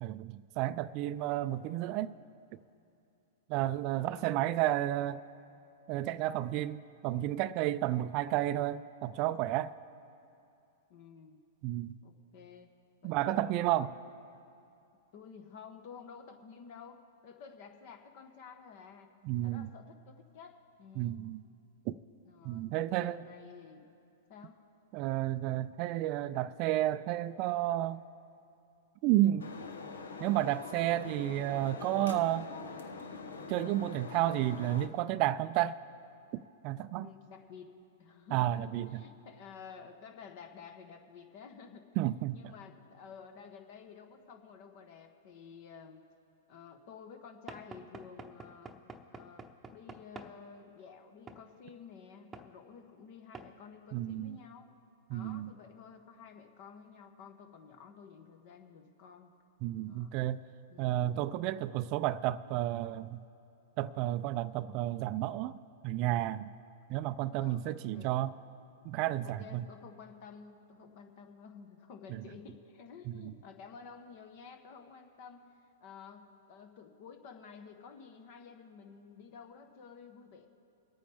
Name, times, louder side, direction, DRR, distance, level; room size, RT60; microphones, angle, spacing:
voice 1, 0.0-2.1 3.5-5.2 5.9-9.7 11.6-12.0 13.0-13.9 19.2-19.7 21.0-21.4 21.9-22.0 22.4-23.2 24.9-28.0 29.0-29.5 30.2-32.5 33.5-35.8 36.6-37.1 38.3-39.0 42.0-42.5 53.9-54.4 55.1-55.5 59.6-60.4 60.8-63.2 63.8-65.6 65.8-66.5 66.9-68.3 68.8-69.7 72.1-72.2 73.1-73.3, right 14 dB, 45° right, 0.4 m, -31 dB
voice 2, 4.0-4.4 10.9-11.4 12.0-12.7 13.0-13.3 13.5-13.9 15.1-19.1 19.4-21.2 22.2-23.9 24.3-24.6 37.0-37.7 38.0-41.9 42.3-46.0 46.5-48.7 49.1-54.8 55.1-59.3 59.9-60.1 60.7-61.1 67.4-68.2 69.2-75.5 75.8-80.5, left 6 dB, 55° left, 1.3 m, -52 dB
sound 1, 29.4-34.9, left 4 dB, 85° left, 0.9 m, -44 dB
Knock / Wood, 47.5-50.4 51.3-51.5 52.3-52.5 53.3-53.5, right 3 dB, 15° right, 0.9 m, -48 dB
23.5 x 9.1 x 3.5 m
hypercardioid pair, 115°, 0 cm